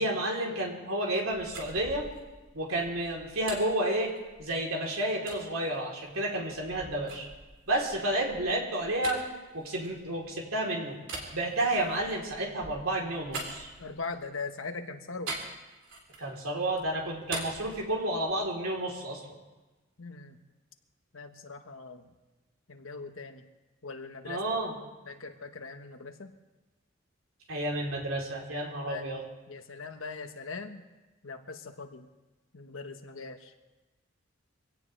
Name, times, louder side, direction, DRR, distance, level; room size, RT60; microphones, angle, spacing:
voice 1, 0.0-2.1 2.5-4.1 4.4-7.3 7.7-9.2 9.5-11.0 11.3-13.7 16.2-19.2 24.3-24.7 27.5-29.2, right 1 dB, 90° right, -1 dB, 3.7 m, -31 dB
sound 1, 1.1-4.6 5.3-5.4 6.0-10.4 11.0-14.2 15.3-16.4 16.7-18.5, right 3 dB, 70° right, 3.5 m, -43 dB
voice 2, 13.8-15.4 20.0-20.4 21.1-22.1 22.7-23.5 23.8-24.4 25.1-26.3 28.3-29.1 29.5-30.9 31.2-32.1 32.5-33.5, left 4 dB, 80° left, 6 dB, 1.3 m, -41 dB
24.0 x 17.0 x 3.4 m, 1.2 s
head